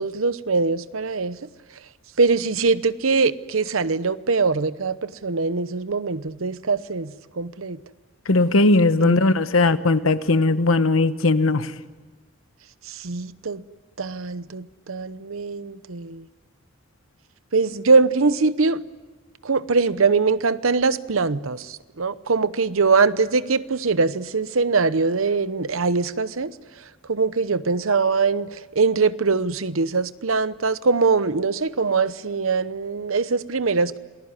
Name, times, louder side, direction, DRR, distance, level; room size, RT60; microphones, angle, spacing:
voice 1, 0.0-1.4 2.2-7.8 9.0-9.4 12.9-13.6 14.0-16.2 17.5-18.8 19.4-26.5 27.1-34.0, right 4 dB, 80° right, 15 dB, 0.9 m, -22 dB
voice 2, 8.3-11.7, left 2 dB, 85° left, 12 dB, 1.2 m, -18 dB
27.5 x 19.5 x 9.8 m, 1.3 s
head